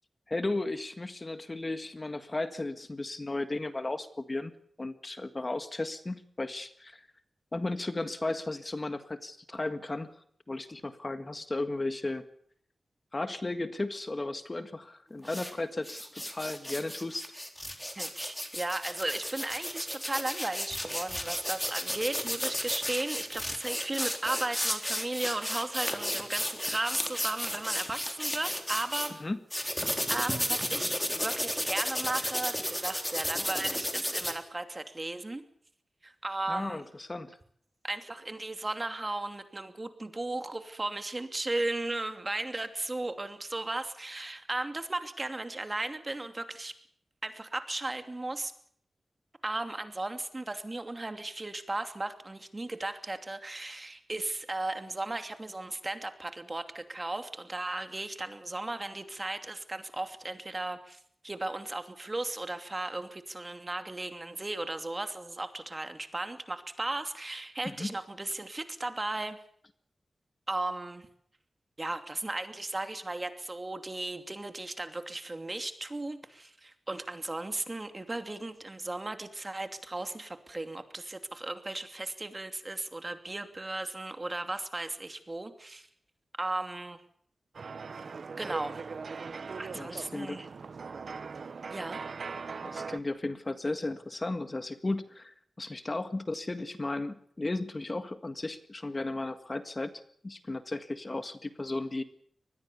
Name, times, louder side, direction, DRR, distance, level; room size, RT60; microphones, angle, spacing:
voice 1, 0.3-4.5 4.8-7.1 7.5-10.1 10.5-12.2 13.1-17.2 29.2-29.4 36.5-37.4 67.6-67.9 89.7-90.4 92.6-99.9 100.2-102.0, left 2 dB, 30° left, 10 dB, 1.7 m, -35 dB
sound 1, 15.2-15.5 15.8-29.1 29.5-34.3, equal, 5° left, 3.8 m, -33 dB
voice 2, 17.9-29.1 30.1-35.4 36.0-36.8 37.8-46.7 47.2-48.5 49.4-69.4 70.5-71.1 71.8-85.9 86.4-87.0 88.4-88.9 89.6-90.5 91.7-92.0, right 2 dB, 30° right, 8 dB, 2.7 m, -36 dB
sound 2, 87.5-93.0, right 5 dB, 70° right, 1.1 m, -40 dB
25.0 x 20.0 x 7.0 m, 0.65 s
wide cardioid pair, 95°, 0 cm